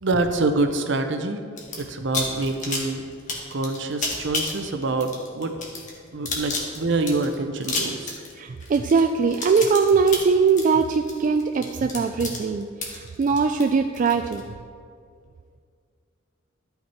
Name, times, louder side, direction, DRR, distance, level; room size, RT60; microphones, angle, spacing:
voice 1, 0.0-1.4 1.8-3.0 3.5-5.5 6.1-8.2, right 2 dB, 65° right, 6 dB, 0.7 m, -26 dB
sound 1, 1.6-1.8 2.1-14.4, left 3 dB, 40° left, 1.6 m, -31 dB
voice 2, 8.4-14.4, right 5 dB, 40° right, 6 dB, 0.3 m, -21 dB
12.5 x 5.7 x 4.4 m, 2.2 s
head